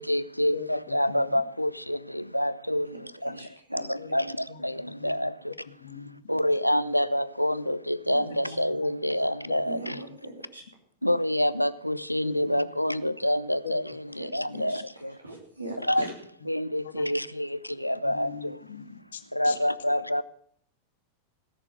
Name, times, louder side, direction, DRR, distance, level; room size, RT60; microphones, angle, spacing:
voice 1, 0.0-5.5 6.3-10.0 11.0-15.2 15.9-16.1 16.5-18.6 19.3-20.2, left 1 dB, 90° left, 0.4 m, -27 dB
voice 2, 0.5-1.4 4.0-4.2 4.5-4.6 5.0-5.2 5.6-6.4 8.2-9.1 9.5-10.0 12.2-12.6 13.6-13.8 14.5-14.6 16.4-16.5 16.8-17.3 18.0-19.6, left 7 dB, 65° left, 1.3 m, -42 dB
voice 3, 3.3-3.9 4.2-4.3 8.4-8.6 9.6-10.6 14.2-14.3 14.5-16.1, right 2 dB, 85° right, 2.9 m, -41 dB
17.5 x 6.8 x 6.9 m
figure-of-eight pair, 90°, 0 cm